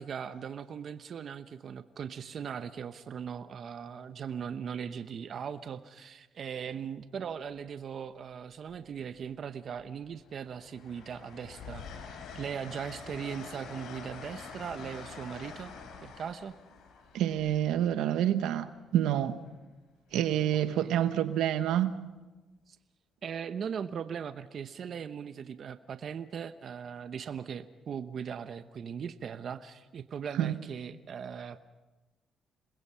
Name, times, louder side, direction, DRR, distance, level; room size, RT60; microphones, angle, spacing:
voice 1, 0.0-11.8 12.3-15.7 16.0-16.5 20.8-20.9 22.7-22.8 23.2-31.6, right 7 dB, 55° right, 10 dB, 0.9 m, -39 dB
Train, 7.3-7.4 8.6-9.3 9.8-18.5 20.1-20.4, left 5 dB, 80° left, 4.6 m, -47 dB
voice 2, 17.1-18.7 18.9-19.4 20.1-21.9 30.4-30.5, right 11 dB, 90° right, 10 dB, 1.2 m, -27 dB
28.0 x 21.0 x 5.7 m, 1.1 s
cardioid pair, 90°, 0 cm